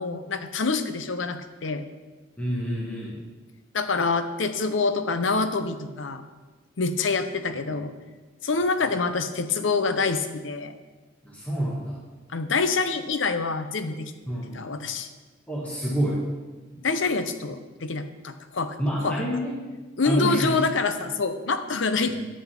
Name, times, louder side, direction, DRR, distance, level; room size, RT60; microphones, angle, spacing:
voice 1, 0.0-1.8 3.7-6.2 6.8-7.9 8.4-10.7 12.3-14.1 14.5-15.1 16.8-18.8 19.0-19.2 20.0-22.1, left 4 dB, 80° left, 10 dB, 0.8 m, -26 dB
voice 2, 2.4-3.2 11.2-12.0 14.3-14.7 15.5-16.2 16.7-16.8 18.8-19.5 20.0-20.6 22.1-22.2, equal, 10° left, -5 dB, 1.3 m, -28 dB
8.6 x 5.9 x 7.1 m, 1.3 s
head